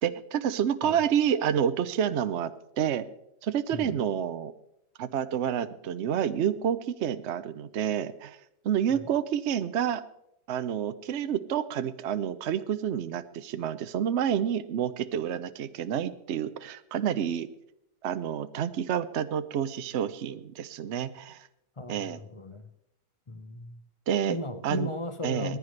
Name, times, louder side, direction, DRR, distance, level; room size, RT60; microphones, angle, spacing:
voice 1, 0.0-3.1 3.4-4.5 5.0-8.4 8.6-10.0 10.5-17.5 18.0-21.5 21.9-22.2 24.1-24.4 24.6-24.9 25.2-25.6, right 9 dB, 60° right, 11 dB, 0.7 m, -29 dB
voice 2, 21.8-22.6 23.3-23.8 24.3-25.6, left 2 dB, 35° left, 8 dB, 0.5 m, -36 dB
19.5 x 14.5 x 3.2 m, 0.80 s
omnidirectional pair, 1.8 m